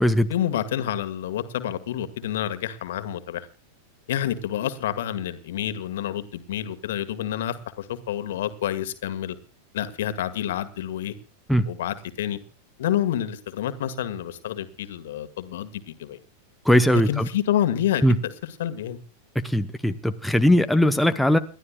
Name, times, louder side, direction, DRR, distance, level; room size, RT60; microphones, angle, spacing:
voice 1, 0.3-3.5 4.1-9.4 9.7-11.1 11.7-12.4 12.8-16.2 16.9-19.0, left 11 dB, 55° left, 1.7 m, -28 dB
voice 2, 16.7-17.3 18.0-18.2 19.4-21.4, equal, ahead, 0.9 m, -19 dB
29.0 x 12.0 x 2.4 m
figure-of-eight pair, 90°, 0 cm